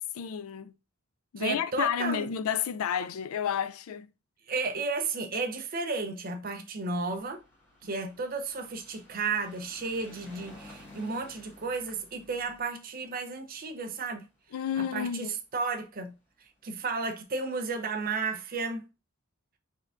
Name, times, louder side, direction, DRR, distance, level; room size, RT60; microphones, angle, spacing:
voice 1, 0.1-0.7 1.3-4.1 7.8-7.9 14.5-15.3, left 8 dB, 85° left, 0.4 m, -31 dB
voice 2, 1.4-2.3 4.5-7.4 7.8-14.2 14.8-15.3 15.5-16.1 16.6-18.8, right 4 dB, 45° right, 0.7 m, -33 dB
sound 1, 7.1-15.6 16.4-16.5 16.7-16.8 17.1-17.2, left 1 dB, 10° left, 1.6 m, -54 dB
4.4 x 3.5 x 2.5 m
head